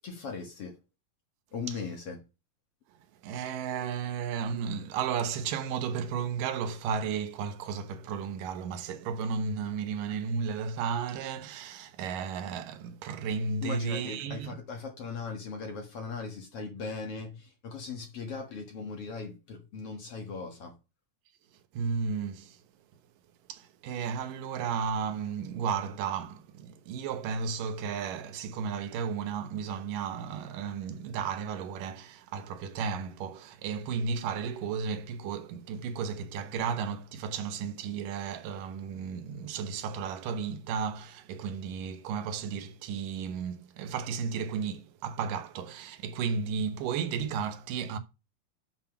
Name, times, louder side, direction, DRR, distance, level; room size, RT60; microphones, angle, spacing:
voice 1, 0.0-0.7 1.5-2.2 13.6-20.7, left 4 dB, 55° left, 1.8 m, -39 dB
voice 2, 3.2-14.6 21.7-22.6 23.5-48.0, right 6 dB, 70° right, 2.5 m, -33 dB
7.3 x 5.6 x 5.8 m
omnidirectional pair, 4.2 m